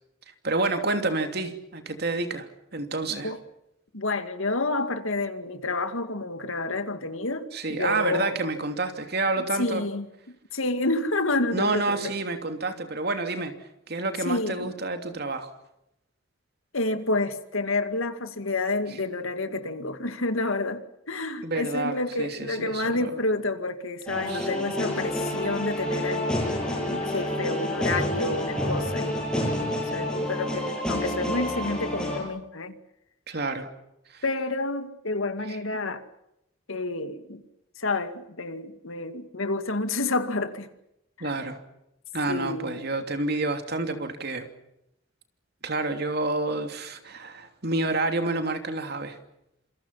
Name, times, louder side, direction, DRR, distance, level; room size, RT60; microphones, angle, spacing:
voice 1, 0.4-2.5 2.7-3.3 7.5-9.8 11.5-13.5 13.9-15.5 21.4-23.2 24.3-24.7 33.3-33.7 34.1-34.2 35.5-35.6 41.2-41.6 42.1-44.5 45.6-49.2, right 2 dB, 50° right, 3.0 m, -29 dB
voice 2, 3.9-8.4 9.4-10.1 10.5-12.1 14.2-14.7 16.7-20.8 21.1-32.7 34.2-36.0 36.7-37.4 37.8-40.7 41.2-41.4 42.3-42.8, left 2 dB, 85° left, 2.3 m, -29 dB
sound 1, 24.1-32.2, left 1 dB, 5° left, 7.9 m, -29 dB
27.5 x 26.5 x 5.8 m
head